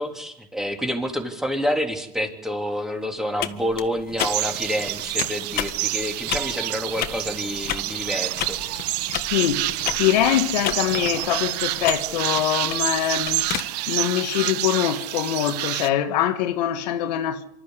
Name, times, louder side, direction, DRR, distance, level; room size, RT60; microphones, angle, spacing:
voice 1, 0.0-8.8, equal, ahead, 3.3 m, -28 dB
sound 1, 3.4-13.6, left 11 dB, 50° left, 1.7 m, -33 dB
sound 2, 4.2-15.9, right 18 dB, 80° right, 0.9 m, -28 dB
voice 2, 9.3-9.7 9.9-17.4, left 11 dB, 90° left, 1.8 m, -23 dB
25.5 x 13.5 x 8.2 m
supercardioid pair, 120°, 20 cm